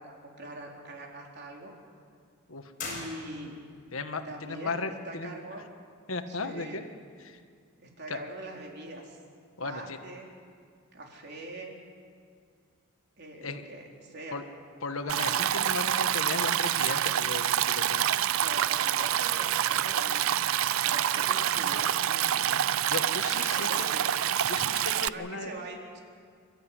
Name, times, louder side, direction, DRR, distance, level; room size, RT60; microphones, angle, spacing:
voice 1, 0.0-1.7 2.8-3.6 4.2-5.6 6.3-6.8 7.8-9.2 9.6-10.3 10.9-11.8 13.2-14.4 18.2-20.3 20.5-22.5 23.3-24.0 25.1-26.0, right 1 dB, 50° right, 0 dB, 4.1 m, -43 dB
sound 1, 2.8-3.8, left 3 dB, 40° left, 5.7 m, -40 dB
voice 2, 3.9-5.3 6.1-6.8 7.2-7.4 8.1-8.2 9.6-10.0 13.4-13.6 14.3-14.4 14.8-18.1 22.9-23.9 24.5-25.5, left 3 dB, 75° left, 8 dB, 1.4 m, -36 dB
Stream, 15.1-25.1, right 10 dB, 75° right, 0.5 m, -27 dB
27.0 x 13.0 x 9.8 m, 2.1 s
head